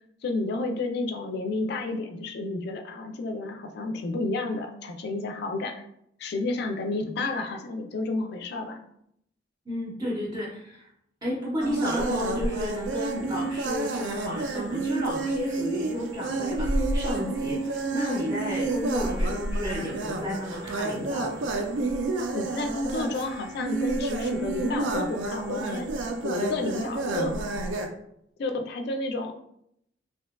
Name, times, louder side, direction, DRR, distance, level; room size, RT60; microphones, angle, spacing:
voice 1, 0.2-5.7 6.2-8.8 22.3-25.9 26.2-27.3 28.4-29.3, left 2 dB, 60° left, 5 dB, 0.3 m, -31 dB
voice 2, 9.7-10.9 11.2-21.5, left 1 dB, 20° right, -4 dB, 0.4 m, -32 dB
sound 1, 11.6-27.9, right 2 dB, 90° right, 0.3 m, -29 dB
2.7 x 2.2 x 2.2 m, 0.73 s
head